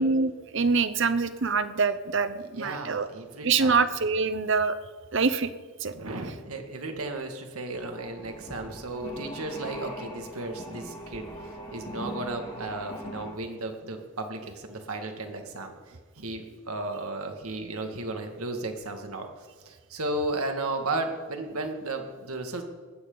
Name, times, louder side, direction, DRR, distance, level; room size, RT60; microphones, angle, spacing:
voice 1, 0.0-3.1 3.4-4.8 5.1-5.5 5.8-5.9, right 4 dB, 55° right, 12 dB, 0.8 m, -25 dB
voice 2, 2.5-3.8 5.9-19.3 19.7-22.6, right 2 dB, 85° right, 4 dB, 2.1 m, -34 dB
sound 1, 7.7-13.3, equal, 30° left, 3.8 m, -40 dB
19.5 x 15.5 x 4.0 m, 1.5 s
head